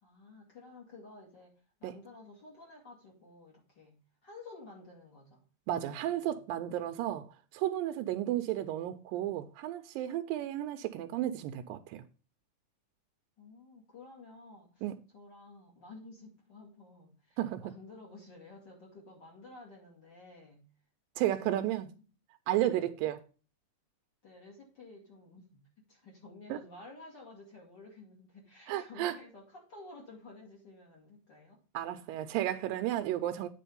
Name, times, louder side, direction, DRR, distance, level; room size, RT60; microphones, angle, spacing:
voice 1, 0.0-1.5 1.8-5.4 5.7-6.3 13.4-14.9 15.1-20.6 21.3-21.9 22.5-22.9 24.2-31.6, left 3 dB, 35° left, 2.6 m, -52 dB
voice 2, 5.7-7.3 7.5-12.0 14.8-15.0 17.4-17.7 21.2-21.9 22.5-23.2 26.5-26.6 28.7-29.1 31.7-33.5, right 13 dB, 90° right, 2.3 m, -33 dB
9.2 x 4.2 x 5.3 m
omnidirectional pair, 4.0 m